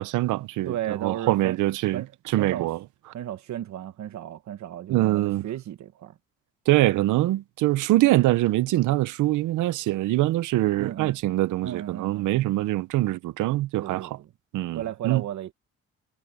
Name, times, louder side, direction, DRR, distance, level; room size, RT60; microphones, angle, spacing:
voice 1, 0.0-0.7 1.0-2.0 2.3-2.8 4.9-5.5 6.7-14.1 14.5-15.2, right 16 dB, 85° right, 0.8 m, -23 dB
voice 2, 0.6-1.6 1.9-2.7 3.1-6.2 10.8-11.2 11.6-12.5 13.8-14.3 14.7-15.5, right 11 dB, 70° right, 1.1 m, -34 dB
cardioid pair, 90°, 30 cm